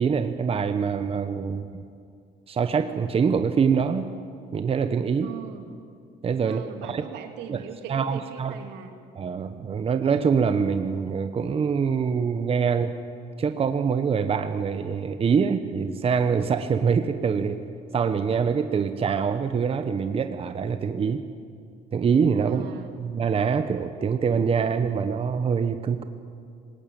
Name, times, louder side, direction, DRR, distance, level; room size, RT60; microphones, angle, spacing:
voice 1, 0.0-1.8 2.5-4.1 4.5-5.3 6.2-7.0 7.5-7.6 7.9-8.5 9.2-12.9 13.4-17.6 17.9-21.2 21.9-22.7 23.0-26.0, right 6 dB, 35° right, 9 dB, 1.0 m, -24 dB
voice 2, 5.2-5.7 6.4-8.9 22.5-22.9, right 8 dB, 85° right, 5 dB, 2.3 m, -40 dB
19.5 x 18.5 x 9.1 m, 2.3 s
cardioid pair, 110°, 17 cm